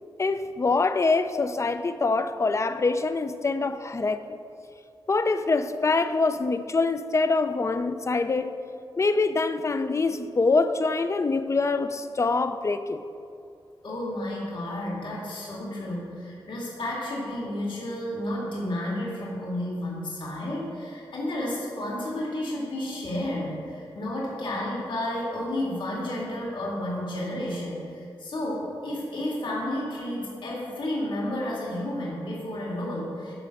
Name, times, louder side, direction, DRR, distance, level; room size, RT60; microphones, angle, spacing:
voice 1, 0.2-4.3 5.1-8.6 9.0-13.0, left 3 dB, 35° left, 0.5 m, -25 dB
voice 2, 13.8-33.3, left 1 dB, 65° left, 2.3 m, -31 dB
12.5 x 5.0 x 6.5 m
wide cardioid pair, 125°, 9 cm